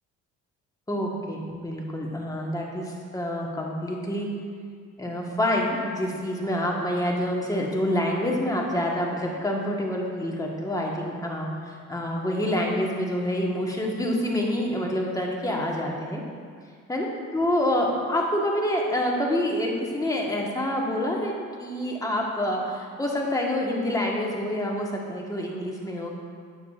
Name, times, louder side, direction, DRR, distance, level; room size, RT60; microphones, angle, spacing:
voice 1, 0.9-4.3 5.0-16.2 16.9-26.2, left 1 dB, 10° left, -2 dB, 1.2 m, -27 dB
9.0 x 7.2 x 2.4 m, 2.1 s
cardioid pair, 90°, 30 cm